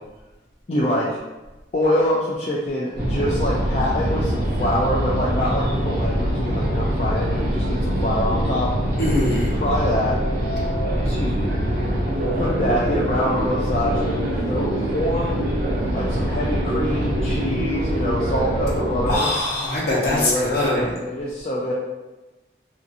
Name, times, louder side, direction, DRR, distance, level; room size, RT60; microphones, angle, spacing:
voice 1, 0.7-1.2 1.7-8.7 9.5-10.2 11.0-11.5 12.3-15.4 15.9-19.3 20.0-21.7, left 1 dB, 35° left, -6 dB, 0.3 m, -25 dB
sound 1, 3.0-19.2, equal, 65° right, 0.7 m, -23 dB
voice 2, 9.0-9.5 19.1-20.8, left 1 dB, 55° left, -6 dB, 0.9 m, -22 dB
2.6 x 2.6 x 2.4 m, 1.1 s
head